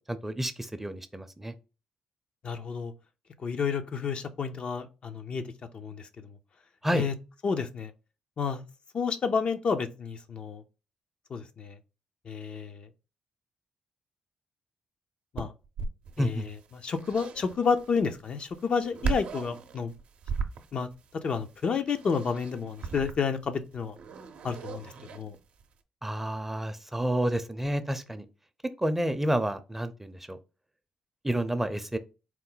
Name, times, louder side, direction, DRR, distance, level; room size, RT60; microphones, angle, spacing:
voice 1, 0.1-1.5 6.8-7.1 16.2-16.4 26.0-28.2 28.8-30.4 31.2-32.0, right 1 dB, 10° right, 0.6 m, -29 dB
voice 2, 2.4-2.9 3.4-5.4 5.7-6.4 6.9-7.1 7.4-7.9 8.4-8.6 8.9-10.6 11.3-11.8 12.3-12.9 15.3-15.5 16.2-19.9 20.7-24.0 24.4-25.4, left 5 dB, 55° left, 0.6 m, -30 dB
sound 1, 15.4-25.7, right 5 dB, 70° right, 0.6 m, -38 dB
4.4 x 2.1 x 3.8 m
cardioid pair, 70°, 2 cm